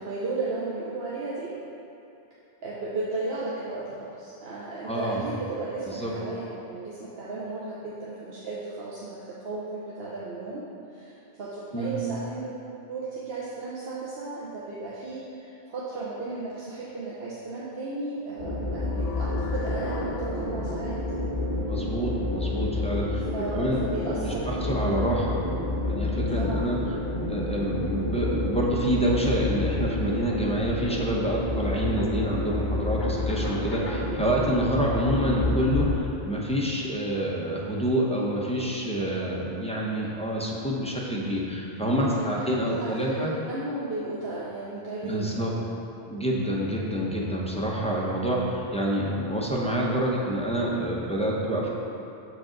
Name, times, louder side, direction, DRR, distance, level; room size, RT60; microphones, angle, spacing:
voice 1, 0.0-1.6 2.6-10.7 10.9-12.6 12.9-21.0 23.3-25.3 26.3-26.7 38.9-39.6 42.1-45.6, right 2 dB, 70° right, -7 dB, 1.0 m, -35 dB
voice 2, 4.8-5.3 5.9-6.1 11.7-12.0 21.6-23.2 23.5-23.8 24.1-25.4 25.8-26.8 27.3-43.3 45.0-45.5 46.0-51.7, right 1 dB, 5° left, -5 dB, 0.7 m, -27 dB
sound 1, 18.4-35.9, left 2 dB, 50° left, 1.0 m, -29 dB
7.1 x 5.1 x 3.8 m, 2.9 s
omnidirectional pair, 1.1 m